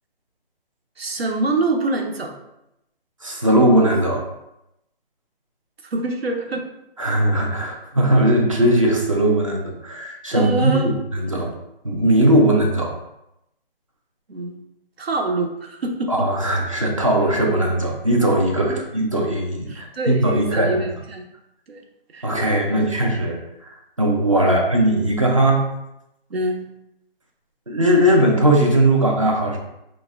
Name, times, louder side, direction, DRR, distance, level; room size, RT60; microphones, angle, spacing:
voice 1, 1.0-2.3 5.9-6.7 10.3-11.0 14.3-14.6 15.0-16.3 18.7-18.8 19.7-21.2 21.7-21.8 22.1-22.4 22.6-22.9 24.4-24.6 26.3-26.6, right 3 dB, 85° right, 2 dB, 0.9 m, -25 dB
voice 2, 3.2-4.3 7.0-10.7 11.1-11.5 11.8-12.9 16.1-20.8 22.2-23.4 23.6-25.7 27.7-29.6, right 1 dB, 35° right, 0 dB, 0.5 m, -19 dB
5.2 x 2.1 x 3.4 m, 0.85 s
hypercardioid pair, 175°, 30 cm